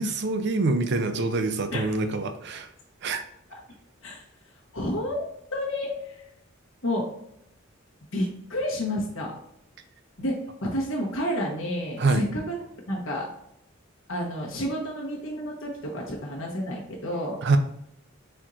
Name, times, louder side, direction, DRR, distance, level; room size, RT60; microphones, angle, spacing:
voice 1, 0.0-2.7 3.0-3.2 12.0-12.3 17.4-17.6, right 3 dB, 55° right, 8 dB, 0.5 m, -25 dB
voice 2, 4.7-6.2 6.8-7.1 8.1-9.3 10.2-12.6 12.9-13.3 14.1-17.4, equal, 65° left, -2 dB, 1.0 m, -30 dB
4.3 x 4.3 x 2.5 m, 0.73 s
head